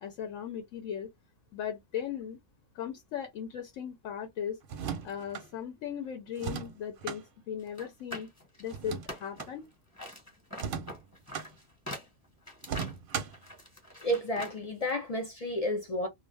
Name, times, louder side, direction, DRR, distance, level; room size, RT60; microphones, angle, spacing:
voice 1, 0.0-1.1 1.5-2.4 2.7-4.6 5.0-8.3 8.6-9.6, left 9 dB, 85° left, 1.0 m, -37 dB
sound 1, 4.6-5.5 6.4-7.2 8.7-9.5 10.5-11.5 12.6-13.5, right 7 dB, 55° right, 0.6 m, -37 dB
sound 2, 7.7-9.7 9.9-14.6 14.9-15.0, left 1 dB, 15° left, 1.1 m, -44 dB
voice 2, 14.0-16.1, equal, 55° left, 0.4 m, -31 dB
2.4 x 2.2 x 3.2 m
omnidirectional pair, 1.3 m